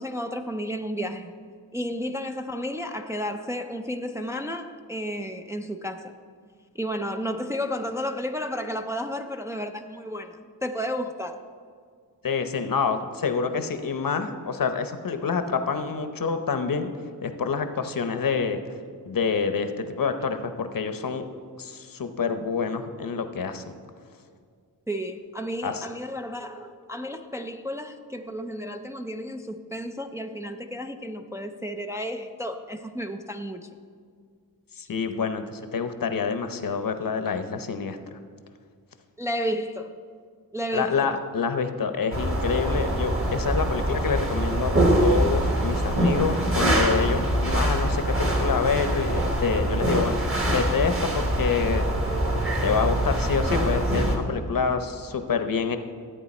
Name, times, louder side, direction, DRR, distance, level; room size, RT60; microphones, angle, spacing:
voice 1, 0.0-1.3 1.7-6.1 6.8-11.4 24.9-33.7 39.2-39.9 40.5-41.2, equal, 10° right, 5 dB, 0.4 m, -32 dB
voice 2, 12.2-16.9 17.2-18.6 19.1-21.2 21.6-23.6 25.6-25.9 34.8-38.1 40.7-44.7 45.0-50.2 50.5-51.9 52.6-55.8, left 5 dB, 60° left, 8 dB, 0.8 m, -27 dB
sound 1, 42.1-54.2, right 1 dB, 35° right, 1.5 m, -24 dB
13.5 x 8.8 x 4.2 m, 2.1 s
wide cardioid pair, 115°, 39 cm